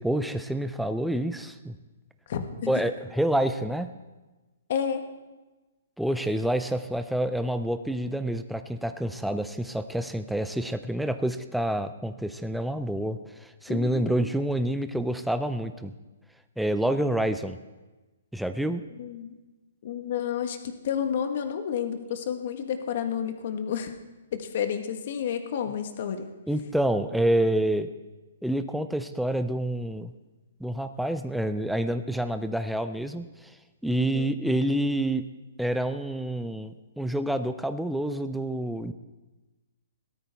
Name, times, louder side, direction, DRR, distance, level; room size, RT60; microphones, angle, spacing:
voice 1, 0.0-1.8 2.7-3.9 6.0-15.9 16.6-17.6 18.3-18.8 26.5-27.9 28.4-30.1 30.6-33.5 33.8-35.2 35.6-38.9, right 1 dB, ahead, 9 dB, 0.4 m, -28 dB
voice 2, 2.3-2.7 4.7-5.0 13.7-14.3 19.0-19.4 19.8-23.9 24.3-26.3 34.0-34.3, left 8 dB, 50° left, 7 dB, 1.4 m, -31 dB
17.0 x 13.0 x 3.5 m, 1.1 s
hypercardioid pair, 155°, 0 cm